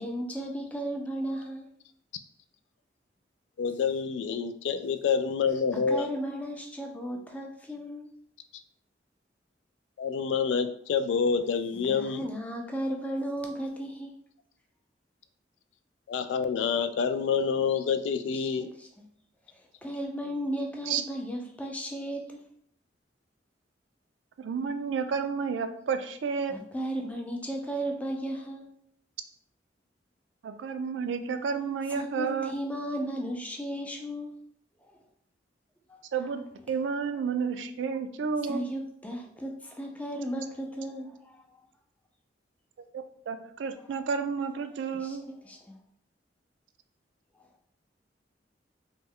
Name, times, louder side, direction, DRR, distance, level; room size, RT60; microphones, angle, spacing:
voice 1, 0.0-1.7 5.9-8.1 11.9-14.2 18.6-18.9 19.8-22.4 26.5-28.7 31.9-34.4 35.9-36.0 38.5-41.4 44.9-45.8, right 1 dB, 10° left, 2 dB, 0.4 m, -35 dB
voice 2, 3.6-6.1 10.0-12.3 16.1-18.7, left 6 dB, 75° left, 10 dB, 0.3 m, -27 dB
voice 3, 24.4-26.6 30.4-32.5 36.1-38.6 42.9-45.2, right 6 dB, 80° right, 9 dB, 0.3 m, -31 dB
3.0 x 2.1 x 3.6 m, 0.65 s
head